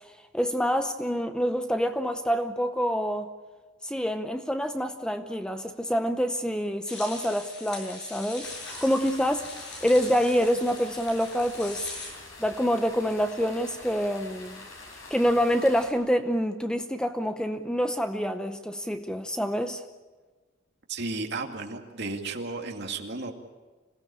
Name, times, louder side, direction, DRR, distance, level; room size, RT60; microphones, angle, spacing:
voice 1, 0.3-3.3 3.8-9.5 9.8-11.9 12.4-14.6 15.1-19.8, equal, 5° left, 8 dB, 0.7 m, -27 dB
sound 1, 6.9-12.1, left 3 dB, 55° left, 7.9 m, -41 dB
sound 2, 8.4-15.9, left 3 dB, 80° left, 6.8 m, -46 dB
voice 2, 20.9-23.3, right 3 dB, 55° right, 3 dB, 2.3 m, -33 dB
26.5 x 17.0 x 8.7 m, 1.3 s
head